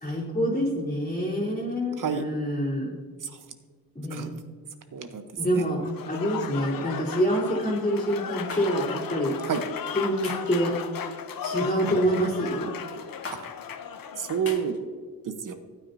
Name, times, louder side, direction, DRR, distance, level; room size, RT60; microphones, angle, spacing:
voice 1, 0.0-2.9 3.9-4.3 5.4-9.3 9.9-10.7 11.4-12.7, equal, 20° left, -7 dB, 3.1 m, -26 dB
voice 2, 4.9-5.2 5.5-5.6 9.5-9.6 14.2-14.8 15.2-15.5, right 7 dB, 60° right, 8 dB, 1.0 m, -29 dB
Applause / Crowd, 5.8-14.7, left 7 dB, 70° left, 0.9 m, -36 dB
sound 1, 8.5-8.6 10.2-10.5 11.8-12.1 13.2-13.4 14.4-14.6, left 3 dB, 40° left, 1.9 m, -37 dB
14.5 x 9.2 x 2.7 m, 1.6 s
cardioid pair, 95°, 36 cm